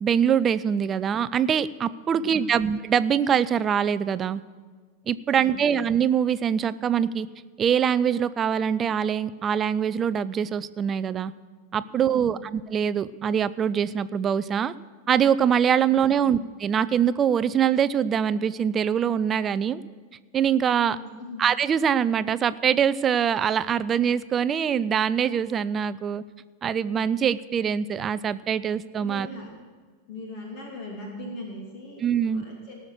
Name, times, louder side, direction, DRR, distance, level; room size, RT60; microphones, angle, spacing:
voice 1, 0.0-4.4 5.1-7.3 7.6-11.3 11.7-14.7 15.1-19.8 20.3-21.0 21.4-26.2 26.6-29.3 32.0-32.4, right 8 dB, 25° right, 16 dB, 0.5 m, -23 dB
voice 2, 2.1-2.6 5.4-5.8 11.9-12.5 15.9-16.4 20.8-21.4 29.0-29.5 30.1-32.8, left 2 dB, 45° left, 0 dB, 2.8 m, -40 dB
18.0 x 6.5 x 6.7 m, 1.5 s
figure-of-eight pair, 90°, 0 cm